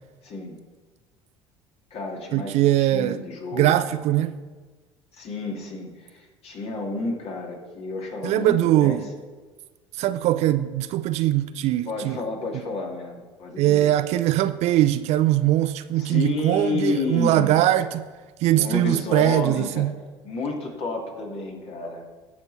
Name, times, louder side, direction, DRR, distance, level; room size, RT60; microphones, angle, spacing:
voice 1, 0.2-0.6 1.9-3.7 5.2-9.0 11.9-13.9 16.0-17.6 18.5-19.9 20.2-22.0, left 3 dB, 45° left, 2.7 m, -30 dB
voice 2, 2.3-3.2 3.5-4.3 8.2-9.1 9.9-12.2 13.6-18.1 18.4-19.9, right 13 dB, 50° right, 0.5 m, -21 dB
18.0 x 6.2 x 4.2 m
figure-of-eight pair, 65°, 14 cm